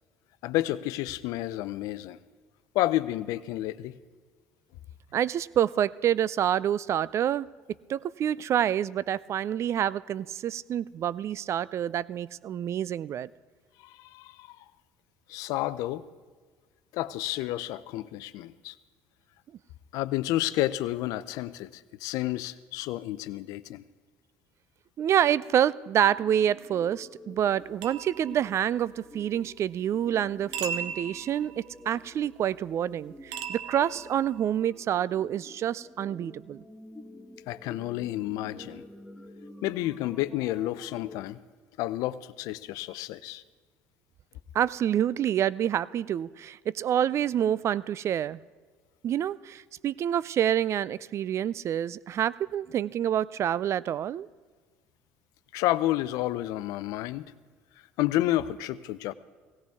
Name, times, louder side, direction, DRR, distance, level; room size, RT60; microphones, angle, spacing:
voice 1, 0.4-2.2 2.7-4.0 13.8-14.6 15.3-16.1 16.9-18.7 19.9-23.8 37.5-38.8 39.6-41.4 41.8-43.4 55.5-57.3 58.0-59.1, left 15 dB, 70° left, 0.5 m, -30 dB
voice 2, 5.1-7.5 7.9-13.3 25.0-36.6 44.5-48.4 49.0-54.3, right 10 dB, 50° right, 0.3 m, -27 dB
sound 1, 25.1-41.2, left 1 dB, 10° left, 1.1 m, -49 dB
sound 2, 27.8-29.1 30.5-32.0 33.3-34.6, right 7 dB, 75° right, 0.7 m, -38 dB
17.0 x 17.0 x 3.5 m
hypercardioid pair, 70°, 6 cm